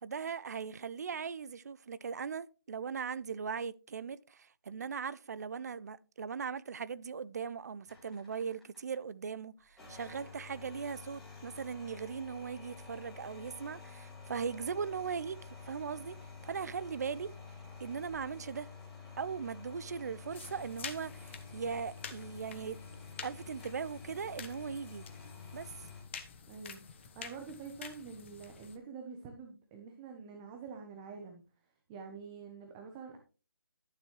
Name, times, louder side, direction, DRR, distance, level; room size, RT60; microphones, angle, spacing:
voice 1, 0.0-15.4 15.6-16.2 16.4-17.3 17.8-18.7 19.2-22.8 23.2-25.1 25.5-25.7, right 6 dB, 45° right, 0.5 m, -39 dB
sound 1, 7.9-9.0 9.7-26.0, left 5 dB, ahead, 2.8 m, -50 dB
sound 2, 20.3-28.8, left 6 dB, 30° left, 1.0 m, -49 dB
voice 2, 26.5-31.4 31.9-33.2, right 5 dB, 15° right, 0.9 m, -47 dB
12.0 x 7.0 x 3.1 m
figure-of-eight pair, 160°, 12 cm